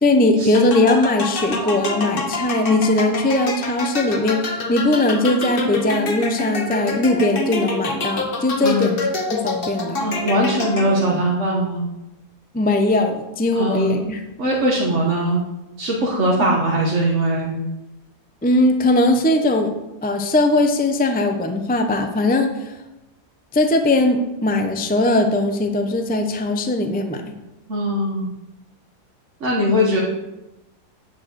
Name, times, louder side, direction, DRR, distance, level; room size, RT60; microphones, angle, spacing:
voice 1, 0.0-9.0 9.3-10.0 12.5-14.2 18.4-19.7 20.0-22.7 23.5-27.2, left 2 dB, 15° left, 6 dB, 0.3 m, -19 dB
sound 1, 0.5-11.2, left 3 dB, 40° left, 1.1 m, -27 dB
voice 2, 10.0-11.8 13.5-14.0 14.4-15.4 15.8-17.5 27.7-28.3 29.4-30.0, equal, 50° right, -4 dB, 1.7 m, -20 dB
9.4 x 4.7 x 7.8 m, 0.96 s
omnidirectional pair, 1.7 m